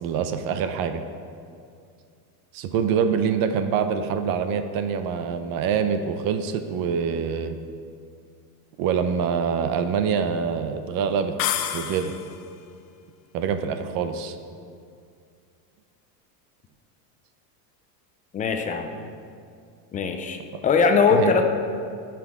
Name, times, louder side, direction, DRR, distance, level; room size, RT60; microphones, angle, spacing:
voice 1, 0.0-1.0 2.5-7.6 8.8-11.3 11.7-12.1 13.3-14.3 21.2-21.3, right 7 dB, 45° right, 8 dB, 0.7 m, -25 dB
sound 1, 11.4-12.5, left 11 dB, 55° left, 0.7 m, -28 dB
voice 2, 18.3-18.9 19.9-21.4, left 5 dB, 20° left, 5 dB, 0.4 m, -21 dB
14.5 x 6.0 x 3.6 m, 2.4 s
supercardioid pair, 135°, 48 cm